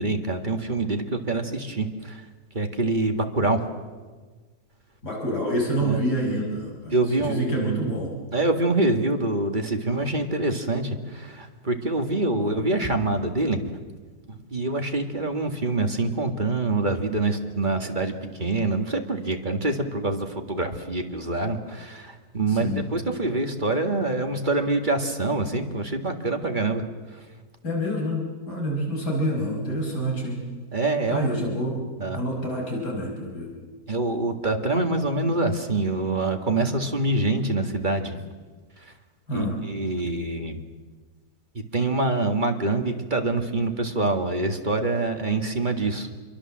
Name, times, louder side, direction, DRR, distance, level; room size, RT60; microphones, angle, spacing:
voice 1, 0.0-2.2 2.5-3.7 5.8-6.0 6.9-7.9 8.3-13.6 14.3-26.8 27.1-27.3 30.7-31.6 32.0-32.2 33.9-38.2 38.8-38.9 39.3-40.6 41.7-46.1, right 2 dB, 30° right, 4 dB, 2.0 m, -25 dB
voice 2, 5.0-7.0 7.2-8.1 12.3-12.6 22.5-22.9 27.6-30.4 31.1-31.8 32.1-33.5 39.3-39.6, equal, 75° left, -1 dB, 5.8 m, -27 dB
28.0 x 23.0 x 7.5 m, 1.4 s
omnidirectional pair, 1.8 m